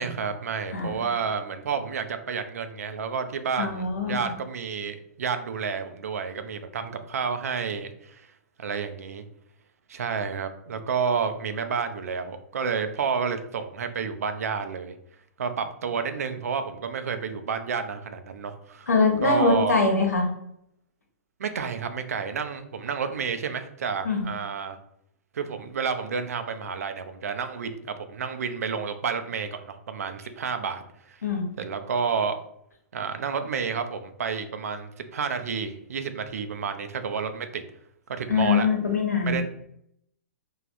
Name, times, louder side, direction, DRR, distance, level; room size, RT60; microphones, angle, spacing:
voice 1, 0.0-8.3 8.6-9.2 9.9-14.9 15.4-18.9 19.2-19.7 21.4-24.8 25.3-31.2 31.6-32.4 32.9-37.6 38.1-38.7 39.2-39.4, right 6 dB, 70° right, 8 dB, 0.4 m, -30 dB
voice 2, 3.6-4.3 18.9-20.3 24.0-24.3 31.2-31.5 38.3-39.4, left 4 dB, 85° left, 1 dB, 0.9 m, -23 dB
3.3 x 2.2 x 2.5 m, 0.73 s
hypercardioid pair, 120°, 8 cm